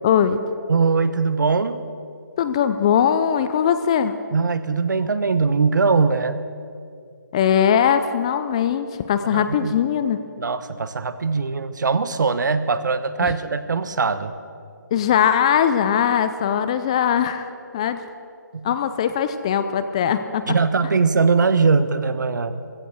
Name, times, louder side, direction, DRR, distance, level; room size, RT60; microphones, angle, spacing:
voice 1, 0.0-0.4 2.4-4.1 7.3-10.2 13.2-13.3 14.9-18.0 18.6-20.5, left 8 dB, 20° left, 11 dB, 0.4 m, -20 dB
voice 2, 0.7-1.8 4.3-6.4 9.3-9.7 10.4-14.3 18.5-18.7 20.5-22.7, right 4 dB, 70° right, 12 dB, 1.1 m, -21 dB
16.0 x 14.5 x 6.3 m, 2.4 s
hypercardioid pair, 165°, 10 cm